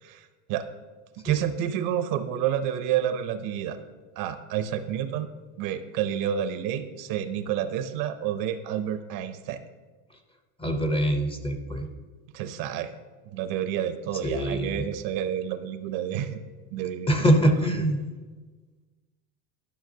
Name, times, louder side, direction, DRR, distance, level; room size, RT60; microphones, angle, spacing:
voice 1, 0.0-0.7 1.2-3.8 4.2-5.3 5.6-9.6 12.3-12.9 13.3-16.4 16.7-17.1, right 10 dB, 50° right, 11 dB, 0.6 m, -29 dB
voice 2, 10.6-11.9 14.2-14.9 17.1-18.0, right 1 dB, 15° left, 5 dB, 0.5 m, -24 dB
11.5 x 5.7 x 2.7 m, 1.3 s
supercardioid pair, 115°, 43 cm